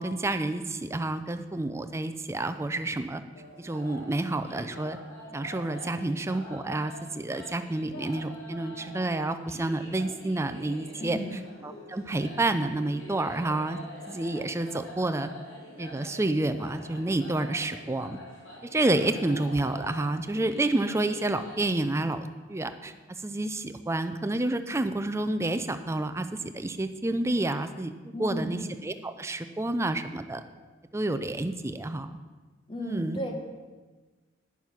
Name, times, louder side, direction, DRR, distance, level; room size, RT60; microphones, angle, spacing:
voice 1, 0.0-3.2 3.6-5.0 5.3-13.8 14.1-15.3 15.8-18.2 18.7-22.9 23.2-27.9 28.2-30.4 30.9-32.1 32.8-33.2, right 2 dB, 15° right, 9 dB, 0.4 m, -29 dB
sound 1, 3.3-21.7, equal, 80° left, 3.3 m, -45 dB
voice 2, 11.0-11.4 28.1-28.6 32.7-33.5, equal, 25° left, 3 dB, 1.2 m, -34 dB
9.6 x 7.1 x 5.9 m, 1.3 s
head